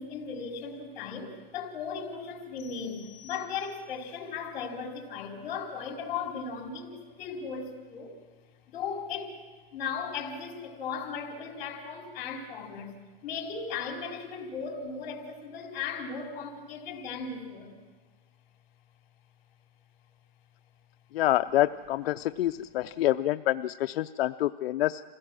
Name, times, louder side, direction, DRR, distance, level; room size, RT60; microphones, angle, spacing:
voice 1, 0.0-8.2 8.7-9.4 9.7-12.9 13.2-17.7, left 5 dB, 50° left, 1 dB, 4.1 m, -37 dB
sound 1, 2.6-4.1, left 10 dB, 15° left, 5.7 m, -54 dB
voice 2, 21.1-25.0, left 14 dB, 80° left, 10 dB, 0.5 m, -27 dB
26.5 x 16.5 x 6.2 m, 1.4 s
supercardioid pair, 170°, 30 cm